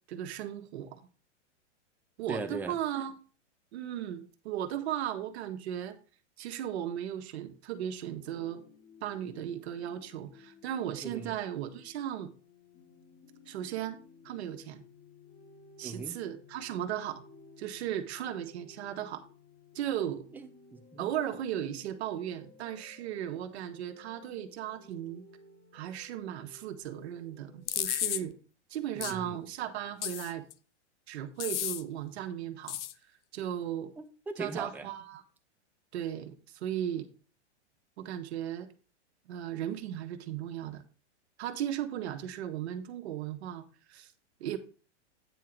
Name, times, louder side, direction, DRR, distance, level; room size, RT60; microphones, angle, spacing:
voice 1, 0.1-1.0 2.2-3.1 3.7-6.0 6.4-8.6 9.0-12.3 13.5-14.8 15.8-17.2 17.6-19.2 19.7-20.2 21.0-25.2 25.7-28.3 28.7-30.5 31.1-32.8 33.3-33.9 34.4-35.2 35.9-37.1 38.0-38.7 39.3-40.8 41.4-44.1 44.4-44.6, right 11 dB, 65° right, 7 dB, 1.3 m, -36 dB
voice 2, 2.3-2.8 11.0-11.3 15.8-16.2 20.3-21.1 28.9-29.4 34.0-34.9, right 4 dB, 5° right, 5 dB, 0.6 m, -39 dB
sound 1, 8.2-28.1, left 4 dB, 20° left, 1.1 m, -57 dB
sound 2, 27.7-28.2 29.0-29.1 30.0-30.5 31.4-31.8 32.7-32.9, left 12 dB, 75° left, 0.7 m, -32 dB
9.2 x 3.8 x 5.9 m, 0.37 s
hypercardioid pair, 140°, 35 cm